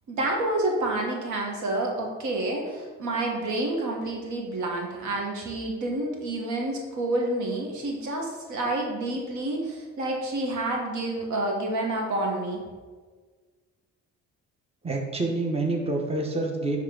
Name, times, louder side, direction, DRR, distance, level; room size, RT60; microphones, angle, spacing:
voice 1, 0.1-12.6, right 2 dB, 75° right, 0 dB, 1.6 m, -29 dB
voice 2, 14.8-16.8, right 2 dB, 20° right, 1 dB, 1.2 m, -27 dB
10.0 x 3.6 x 3.8 m, 1.5 s
cardioid pair, 90°, 30 cm